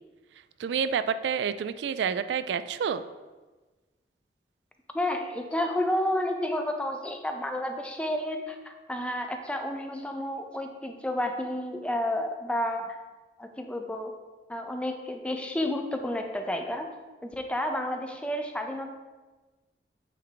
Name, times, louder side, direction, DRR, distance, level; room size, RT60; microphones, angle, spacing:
voice 1, 0.6-3.0, right 7 dB, 80° right, 12 dB, 0.3 m, -28 dB
voice 2, 4.9-13.0 13.4-14.2 14.5-16.9 17.2-18.9, left 1 dB, 5° left, 5 dB, 0.4 m, -31 dB
8.4 x 3.4 x 3.8 m, 1.2 s
head